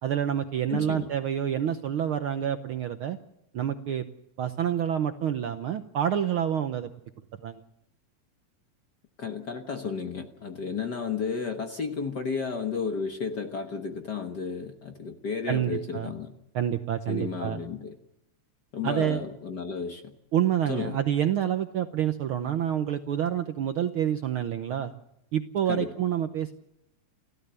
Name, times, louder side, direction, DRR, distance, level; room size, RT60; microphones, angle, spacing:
voice 1, 0.0-3.2 3.5-4.1 4.4-6.9 7.4-7.6 15.5-16.1 16.5-17.6 18.8-19.2 20.3-24.9 25.3-26.5, right 10 dB, 70° right, 8 dB, 1.3 m, -28 dB
voice 2, 0.7-1.1 9.2-16.3 17.1-17.9 18.7-20.1 20.7-21.0 25.7-25.9, left 5 dB, 50° left, 6 dB, 1.4 m, -33 dB
30.0 x 13.5 x 6.8 m, 0.83 s
omnidirectional pair, 3.3 m